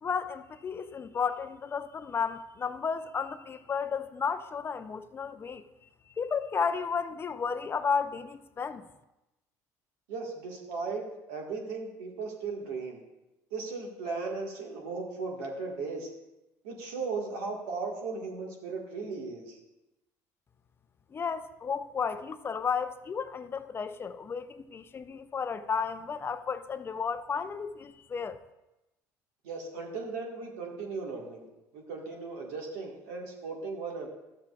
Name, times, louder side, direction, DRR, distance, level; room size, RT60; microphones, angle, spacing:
voice 1, 0.0-5.6 6.2-8.8 21.1-28.4, left 6 dB, 30° left, 0.4 m, -33 dB
voice 2, 10.1-13.0 13.5-16.1 16.6-19.6 29.4-31.5 31.7-34.1, right 4 dB, 90° right, 1.7 m, -37 dB
13.0 x 7.5 x 2.4 m
supercardioid pair, 95°, 8 cm